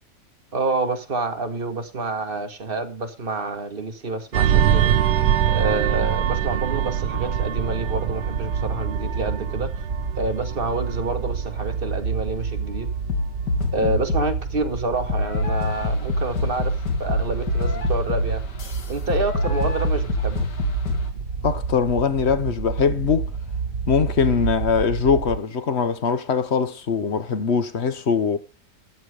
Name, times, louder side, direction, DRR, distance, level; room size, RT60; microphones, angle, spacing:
voice 1, 0.5-5.0 5.5-9.7 10.2-12.9 13.7-16.7 17.0-18.4 18.9-20.5, right 3 dB, 35° right, 1.7 m, -28 dB
sound 1, 4.3-13.4 13.7-14.0, right 10 dB, 85° right, 1.5 m, -24 dB
sound 2, 7.0-25.4, right 5 dB, 60° right, 1.9 m, -29 dB
sound 3, 13.1-14.4 15.1-21.1, left 4 dB, 75° left, 2.2 m, -26 dB
voice 2, 21.4-23.3 23.9-28.4, left 6 dB, 45° left, 1.1 m, -22 dB
13.5 x 7.9 x 4.9 m
omnidirectional pair, 1.9 m